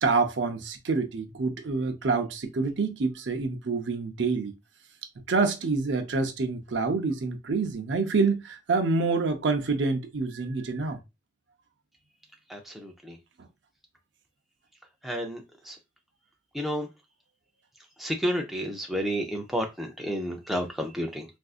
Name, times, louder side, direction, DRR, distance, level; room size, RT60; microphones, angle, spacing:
voice 1, 0.0-4.5 5.3-11.0 13.4-13.5, right 4 dB, 75° right, 0.6 m, -27 dB
voice 2, 12.5-12.9 15.0-15.4 16.5-16.9 18.0-21.2, equal, ahead, 0.6 m, -30 dB
3.5 x 2.6 x 2.4 m
head